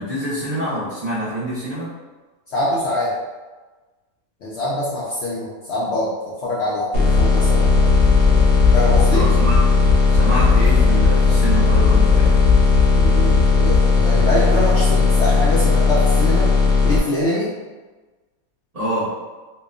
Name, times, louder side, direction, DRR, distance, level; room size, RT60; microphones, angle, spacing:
voice 1, 0.0-1.9 9.1-9.7 10.1-12.4 18.7-19.1, equal, 35° right, -12 dB, 0.6 m, -26 dB
voice 2, 2.5-3.1 4.4-7.7 8.7-9.3 12.9-16.5 16.8-17.5, left 1 dB, 65° left, -7 dB, 0.7 m, -24 dB
sound 1, 6.9-17.0, left 4 dB, 85° left, 1.1 m, -16 dB
sound 2, 7.0-14.7, left 4 dB, 10° right, 0.9 m, -20 dB
2.8 x 2.2 x 2.4 m, 1.3 s
omnidirectional pair, 1.5 m